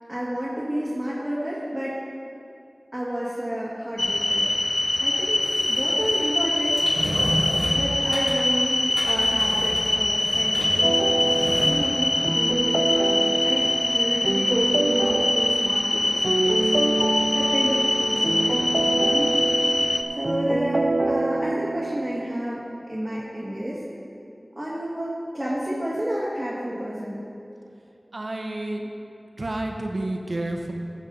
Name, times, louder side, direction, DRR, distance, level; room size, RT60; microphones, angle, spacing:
voice 1, 0.1-2.0 2.9-4.5 5.0-7.1 7.7-16.7 17.3-19.4 20.2-23.8 24.6-27.2, equal, 20° right, -7 dB, 1.8 m, -30 dB
sound 1, 4.0-20.0, left 1 dB, 50° left, 0.6 m, -23 dB
sound 2, 5.6-5.8 6.8-8.5 8.9-10.9 11.2-11.7, equal, 30° left, 2.8 m, -31 dB
sound 3, 10.8-22.4, right 2 dB, 50° right, 0.4 m, -26 dB
voice 2, 28.1-28.8 29.4-30.7, right 1 dB, 65° right, 2 dB, 1.1 m, -30 dB
14.5 x 7.3 x 4.0 m, 2.6 s
wide cardioid pair, 50°, 0 cm